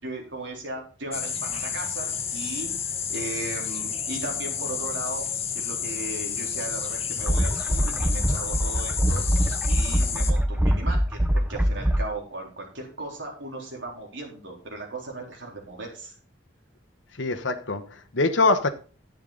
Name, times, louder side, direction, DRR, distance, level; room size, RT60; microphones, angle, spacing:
voice 1, 0.0-2.7 3.1-5.3 5.5-16.1, right 2 dB, 75° right, 3.9 m, -37 dB
sound 1, 1.1-10.3, left 7 dB, 30° left, 1.3 m, -31 dB
sound 2, 7.2-12.0, equal, 5° right, 0.7 m, -23 dB
voice 2, 17.2-18.7, left 3 dB, 80° left, 1.1 m, -23 dB
10.5 x 8.4 x 3.9 m
head